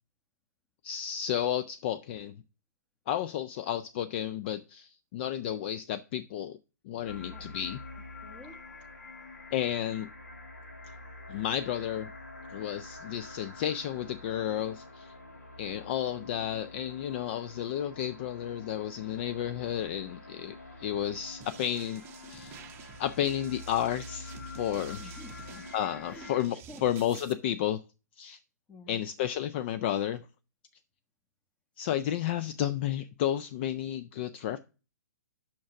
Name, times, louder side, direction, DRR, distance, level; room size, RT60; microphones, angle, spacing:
voice 1, 0.8-2.4 3.1-6.6 6.8-7.8 9.5-10.1 11.3-12.1 12.5-15.1 15.6-22.0 22.3-25.2 25.7-27.8 28.2-28.4 28.9-30.3 31.8-34.6, left 10 dB, 40° left, 0.4 m, -32 dB
sound 1, 7.0-26.4, left 2 dB, 70° left, 3.3 m, -47 dB
voice 2, 8.0-8.6 25.0-25.7 26.1-26.8 28.7-29.1, left 2 dB, 10° left, 1.0 m, -51 dB
sound 2, 21.4-27.3, right 8 dB, 25° right, 0.7 m, -50 dB
6.2 x 5.9 x 6.0 m
figure-of-eight pair, 125°, 9 cm